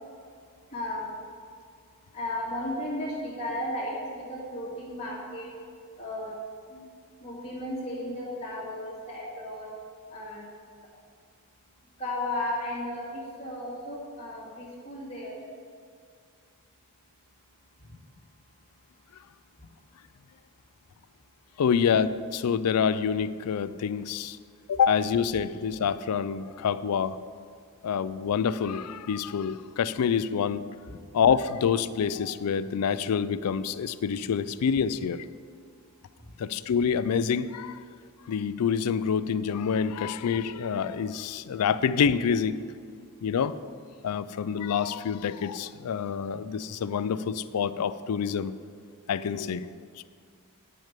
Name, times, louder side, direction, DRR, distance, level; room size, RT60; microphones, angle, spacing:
voice 1, 0.7-1.2 2.1-5.5 6.0-6.3 6.7-6.9 7.2-9.7 10.1-10.5 12.0-15.4 17.8-18.0 30.9-31.0 36.2-36.3, left 1 dB, 30° left, -7 dB, 2.6 m, -34 dB
voice 2, 21.6-24.4 24.7-27.2 27.8-30.7 31.1-35.3 36.4-37.8 38.3-42.6 43.2-43.6 44.0-48.5 49.1-49.7, left 7 dB, 85° left, 16 dB, 0.4 m, -27 dB
8.7 x 6.3 x 6.7 m, 2.2 s
head